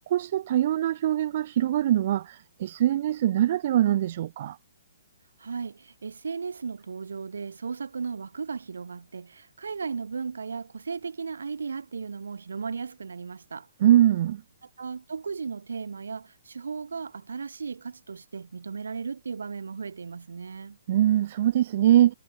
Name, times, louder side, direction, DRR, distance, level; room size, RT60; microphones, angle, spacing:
voice 1, 0.0-4.6 13.8-14.4 20.9-22.1, right 12 dB, 50° right, 0.8 m, -23 dB
voice 2, 5.4-13.7 14.8-20.8, right 5 dB, 85° right, 3.5 m, -36 dB
hypercardioid pair, 145°, 0 cm